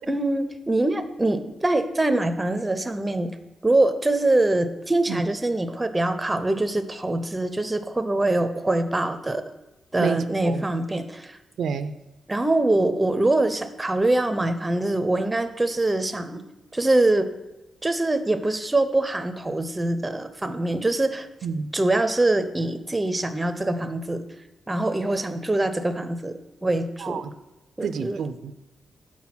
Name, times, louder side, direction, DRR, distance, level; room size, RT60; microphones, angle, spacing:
voice 1, 0.1-3.3 3.6-9.4 9.9-11.4 12.3-16.4 16.7-17.3 17.8-21.3 21.7-24.2 24.7-26.3 26.6-27.2 27.8-28.2, right 2 dB, 15° right, 9 dB, 0.5 m, -24 dB
voice 2, 10.0-10.6 11.6-12.0 21.4-21.7 27.0-27.3 27.8-28.5, right 6 dB, 75° right, 11 dB, 0.3 m, -29 dB
6.0 x 4.6 x 5.6 m, 0.99 s
wide cardioid pair, 125°, 0 cm